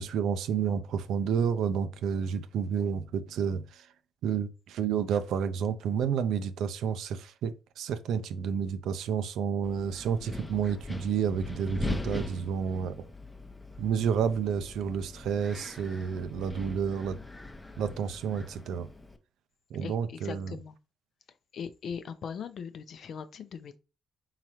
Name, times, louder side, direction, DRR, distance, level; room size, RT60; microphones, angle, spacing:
voice 1, 0.0-3.9 4.2-13.1 13.8-17.2 17.8-18.9 19.7-20.6, right 7 dB, 80° right, 0.5 m, -30 dB
Wind, 9.6-19.2, left 2 dB, 15° left, 0.7 m, -41 dB
voice 2, 19.8-20.8 21.5-23.8, left 6 dB, 60° left, 0.6 m, -40 dB
4.3 x 3.8 x 3.0 m
cardioid pair, 90°, 0 cm